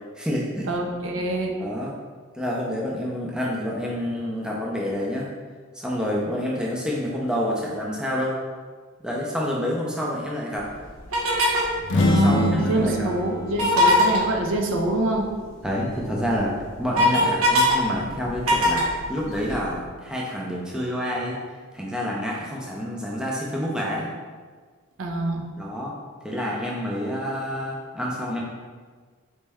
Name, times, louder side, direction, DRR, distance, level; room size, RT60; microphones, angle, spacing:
voice 1, 0.1-0.7 1.6-1.9 2.3-5.3 5.7-8.4 9.0-10.7 11.9-13.1 15.6-16.5 16.8-21.4 21.7-24.1 25.6-26.0 26.2-28.4, equal, 5° right, -4 dB, 0.5 m, -28 dB
voice 2, 0.7-1.6 12.1-15.3 25.0-25.5, right 2 dB, 65° right, 1 dB, 0.5 m, -25 dB
sound 1, 11.1-11.8 13.5-14.2 15.9-16.0 16.4-17.7 18.1-19.7, left 1 dB, 85° right, 0.8 m, -20 dB
sound 2, 11.8-15.6, left 2 dB, 55° left, 0.5 m, -26 dB
4.3 x 3.1 x 3.4 m, 1.5 s
head